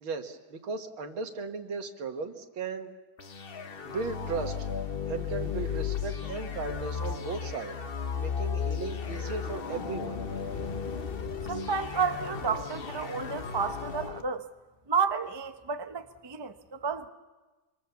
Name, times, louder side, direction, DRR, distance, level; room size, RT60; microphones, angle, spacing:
voice 1, 0.0-2.9 3.8-4.7 5.1-7.8 8.2-10.2, right 4 dB, 85° right, 2.4 m, -36 dB
sound 1, 3.2-14.2, left 6 dB, 40° left, 0.8 m, -35 dB
voice 2, 11.5-14.5 14.9-17.1, right 5 dB, 35° right, 0.4 m, -31 dB
25.0 x 24.5 x 7.1 m
omnidirectional pair, 2.2 m